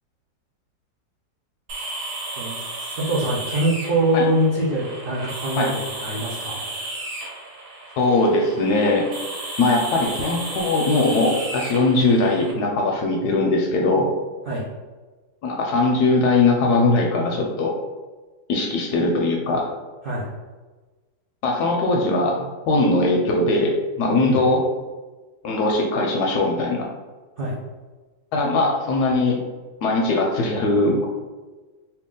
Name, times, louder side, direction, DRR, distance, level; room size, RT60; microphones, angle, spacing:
sound 1, 1.7-12.5, right 2 dB, 65° right, 1.2 m, -33 dB
voice 1, 2.4-6.6 14.5-14.6 20.0-20.3 24.2-24.4 27.4-27.5, right 1 dB, 85° right, -7 dB, 0.4 m, -24 dB
voice 2, 8.0-9.1 9.6-14.1 15.4-17.7 18.5-19.7 21.4-24.6 25.4-26.9 28.3-29.4 29.8-31.1, left 2 dB, 70° left, 0 dB, 1.0 m, -20 dB
2.9 x 2.9 x 3.7 m, 1.3 s
omnidirectional pair, 2.0 m